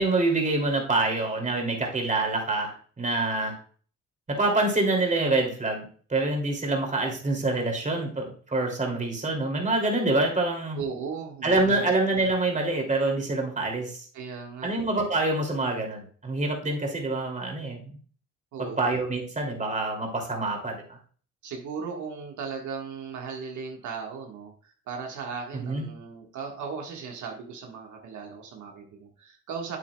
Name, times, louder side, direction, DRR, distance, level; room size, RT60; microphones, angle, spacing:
voice 1, 0.0-3.6 4.3-10.8 11.4-14.1 14.6-17.8 18.6-21.0 25.5-25.8, right 2 dB, 25° right, 1 dB, 2.6 m, -26 dB
voice 2, 10.7-11.9 14.1-14.7 18.5-18.9 21.4-29.8, right 5 dB, 75° right, 1 dB, 1.5 m, -37 dB
8.5 x 8.4 x 2.3 m, 0.43 s
cardioid pair, 90°, 30 cm